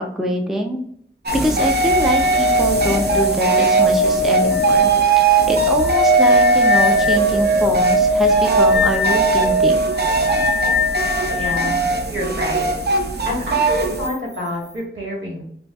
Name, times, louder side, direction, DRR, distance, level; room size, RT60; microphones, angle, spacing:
voice 1, 0.2-0.8 1.3-4.9 5.2-9.8, equal, ahead, 2 dB, 0.5 m, -24 dB
sound 1, 1.3-14.1, right 3 dB, 55° right, 0.6 m, -20 dB
sound 2, 1.9-11.7 14.0-14.1, right 1 dB, 55° left, 0.5 m, -19 dB
voice 2, 11.3-12.6 13.2-15.4, left 1 dB, 75° right, -3 dB, 1.5 m, -27 dB
5.2 x 2.3 x 2.3 m, 0.65 s
wide cardioid pair, 50°, 21 cm